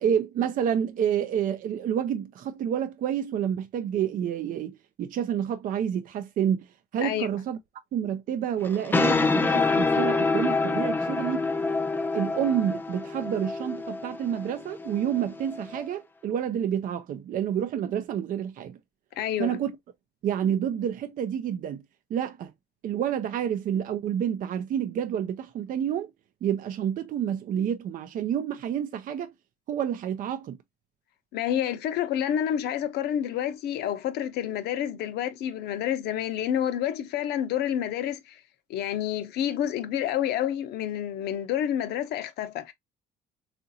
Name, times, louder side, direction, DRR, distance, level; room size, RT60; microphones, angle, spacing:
voice 1, 0.0-6.7 6.9-7.6 7.9-11.5 12.1-18.8 19.4-19.8 20.2-21.8 22.1-22.5 22.8-26.1 26.4-29.3 29.7-30.6, right 9 dB, 55° right, 0.5 m, -29 dB
sound 1, 8.6-15.8, left 3 dB, 10° left, 0.4 m, -27 dB
voice 2, 19.2-19.6 31.3-38.4 38.7-42.7, left 10 dB, 75° left, 0.7 m, -29 dB
3.8 x 2.5 x 2.7 m
cardioid pair, 110°, 17 cm